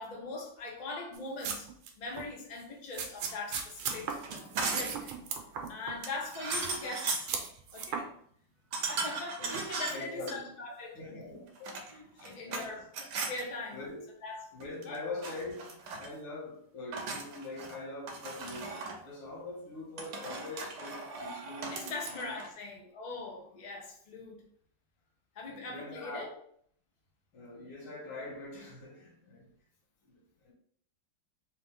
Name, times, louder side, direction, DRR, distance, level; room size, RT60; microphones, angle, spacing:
voice 1, 0.0-1.7 2.0-4.1 4.7-5.1 5.7-7.3 7.7-8.1 8.8-11.0 11.9-12.8 13.3-13.8 14.2-14.5 14.8-15.0 21.7-24.4 25.3-26.3, left 3 dB, 45° left, 0.5 m, -41 dB
sound 1, 1.1-2.3 2.9-6.0 6.2-6.9 7.3-8.0, right 6 dB, 85° right, 1.5 m, -37 dB
sound 2, 3.8-5.0 6.0-7.3 8.7-10.4 11.5-12.7 12.9-13.4 14.6-15.0 15.2-16.1 16.9-17.8 18.1-19.0 20.0-22.5, right 4 dB, 65° right, 1.2 m, -37 dB
voice 2, 9.9-10.5 10.9-11.8 12.1-13.0 13.7-14.1 14.5-21.8 22.1-22.3 25.5-26.4 27.3-29.5 30.0-30.5, left 2 dB, 90° left, 2.3 m, -43 dB
4.3 x 2.7 x 3.7 m
omnidirectional pair, 2.3 m